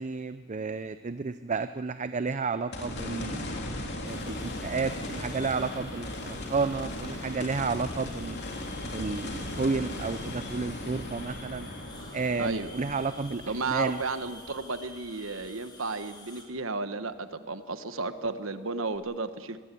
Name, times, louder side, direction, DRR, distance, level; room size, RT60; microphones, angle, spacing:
voice 1, 0.0-3.5 4.0-8.4 8.8-11.7 12.1-14.0, right 4 dB, 35° right, 11 dB, 0.6 m, -31 dB
sound 1, 2.7-15.0 15.5-15.6 18.9-19.0, left 1 dB, 55° left, 3.0 m, -37 dB
sound 2, 4.0-16.5, left 2 dB, 20° left, 3.6 m, -50 dB
voice 2, 12.4-12.7 13.5-19.6, right 3 dB, 70° right, 10 dB, 1.3 m, -33 dB
22.0 x 18.5 x 8.5 m, 1.5 s
head